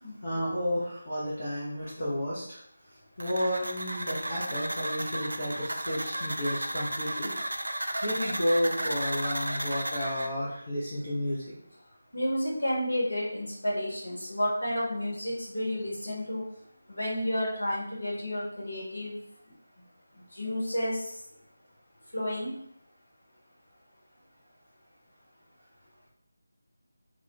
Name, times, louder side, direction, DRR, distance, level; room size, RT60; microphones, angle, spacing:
voice 1, 0.2-2.6 3.2-7.3 8.0-11.4, equal, 40° left, -7 dB, 0.7 m, -31 dB
sound 1, 3.2-10.3, right 1 dB, 65° right, 0.3 m, -34 dB
voice 2, 12.1-16.5 16.9-19.1 20.1-21.1 22.1-22.6, left 1 dB, 70° left, -4 dB, 1.1 m, -31 dB
2.3 x 2.3 x 3.0 m, 0.72 s
figure-of-eight pair, 160°, 0 cm